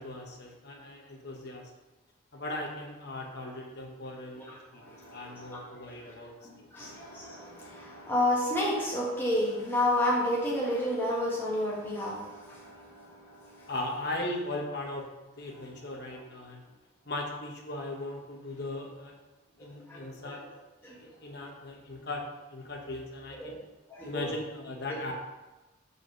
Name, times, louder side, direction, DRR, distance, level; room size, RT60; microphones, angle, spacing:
voice 1, 0.0-1.7 2.3-7.0 13.7-16.6 17.0-19.2 19.6-20.4 21.0-22.2 22.5-23.6 24.0-25.1, left 2 dB, 50° left, 0 dB, 1.2 m, -38 dB
voice 2, 4.8-5.6 6.7-13.7 19.9-20.4 20.8-20.9 23.4-23.6 23.9-24.2 24.9-25.0, left 1 dB, 10° left, -6 dB, 1.5 m, -31 dB
5.0 x 4.8 x 6.1 m, 1.1 s
head